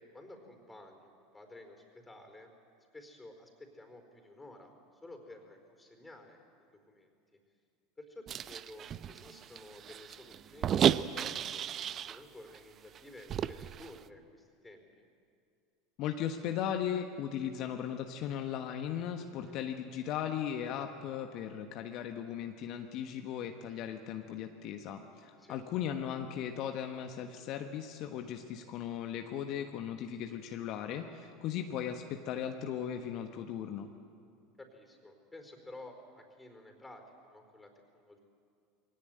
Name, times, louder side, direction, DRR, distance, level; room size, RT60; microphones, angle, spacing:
voice 1, 0.0-2.5 2.9-4.7 5.0-7.4 8.0-11.6 12.1-15.1 25.4-25.6 34.6-38.2, left 2 dB, 10° left, 5 dB, 4.6 m, -52 dB
sound 1, 8.3-12.2 12.5-12.6 12.9-14.0, right 9 dB, 40° right, 0.7 m, -33 dB
voice 2, 16.0-33.9, left 9 dB, 55° left, 5 dB, 1.3 m, -37 dB
22.0 x 17.5 x 9.3 m, 2.3 s
hypercardioid pair, 80°, 0 cm